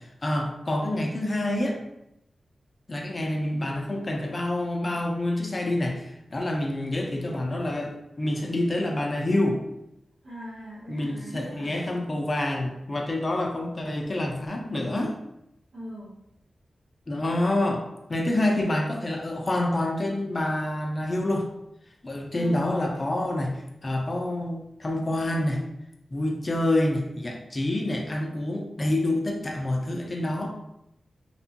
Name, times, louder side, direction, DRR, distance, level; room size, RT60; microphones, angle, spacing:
voice 1, 0.2-1.8 2.9-9.6 10.9-15.1 17.1-21.5 22.0-25.6 26.1-30.5, left 1 dB, 30° left, 1 dB, 0.4 m, -27 dB
voice 2, 10.2-11.8 15.7-16.1 22.3-22.7, equal, 80° right, -10 dB, 0.9 m, -40 dB
2.9 x 2.2 x 2.7 m, 0.84 s
wide cardioid pair, 120°, 0 cm